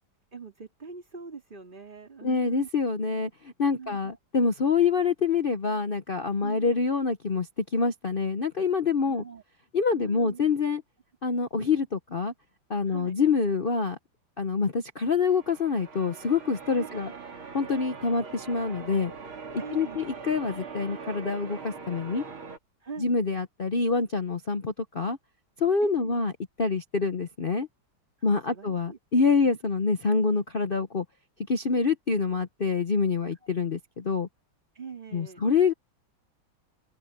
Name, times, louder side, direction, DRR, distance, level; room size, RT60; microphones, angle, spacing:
voice 1, 0.3-2.7 3.8-4.2 6.4-6.8 9.0-9.4 9.9-10.4 12.9-13.2 16.8-16.9 19.6-20.1 22.8-23.2 25.8-26.3 28.2-29.0 29.4-29.6 34.7-35.5, right 5 dB, 25° right, 2.8 m, -43 dB
voice 2, 2.2-7.5 7.7-9.2 9.7-10.8 11.2-12.3 12.7-14.0 14.4-17.1 17.5-19.1 19.7-22.2 23.0-25.2 25.6-26.3 26.6-27.7 28.2-31.0 31.5-34.3 35.1-35.7, left 4 dB, 70° left, 0.5 m, -26 dB
Church bell, 15.3-22.6, right 5 dB, 75° right, 3.6 m, -42 dB
open air
omnidirectional pair, 2.3 m